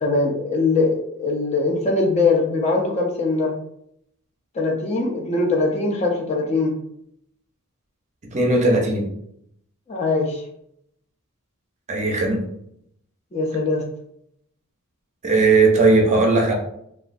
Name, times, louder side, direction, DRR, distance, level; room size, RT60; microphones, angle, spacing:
voice 1, 0.0-3.5 4.5-6.7 9.9-10.4 13.3-13.9, left 3 dB, 30° left, -1 dB, 0.5 m, -21 dB
voice 2, 8.3-9.1 11.9-12.5 15.2-16.5, right 3 dB, 30° right, 0 dB, 0.6 m, -17 dB
3.0 x 2.3 x 2.5 m, 0.72 s
head